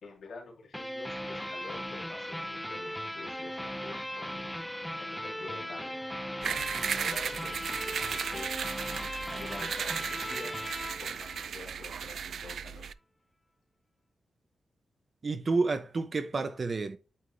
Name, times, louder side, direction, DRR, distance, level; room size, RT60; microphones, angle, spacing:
voice 1, 0.0-6.0 6.3-8.5 9.4-10.6 11.0-12.9, left 3 dB, 80° left, 2.9 m, -48 dB
sound 1, 0.7-12.0, equal, 5° left, 0.6 m, -38 dB
sound 2, 6.4-12.9, right 7 dB, 80° right, 0.3 m, -35 dB
voice 2, 15.2-17.0, right 3 dB, 40° right, 0.9 m, -30 dB
8.9 x 3.5 x 3.3 m
wide cardioid pair, 135°, 0 cm